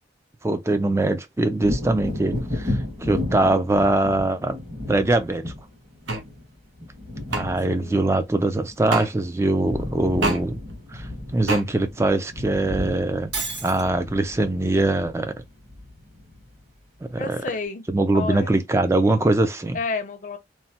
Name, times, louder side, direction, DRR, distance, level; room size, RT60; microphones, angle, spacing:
voice 1, 0.4-4.6 4.9-5.5 7.3-10.6 10.9-13.3 13.6-15.4 17.0-17.4 17.9-19.8, right 2 dB, 15° right, 0.3 m, -22 dB
Wind / Thunder, 1.6-9.2 9.4-16.7 17.1-17.2, left 1 dB, 35° right, 1.5 m, -34 dB
sound 1, 6.1-6.2 7.3-7.4 8.9-9.1 10.2-10.4 11.5-11.6, right 2 dB, 80° right, 0.8 m, -25 dB
voice 2, 7.3-8.0 17.2-17.9 18.1-18.5 19.7-20.4, left 4 dB, 40° left, 0.5 m, -31 dB
Shatter, 13.3-13.9, right 3 dB, 65° right, 1.7 m, -30 dB
3.1 x 2.2 x 2.7 m
head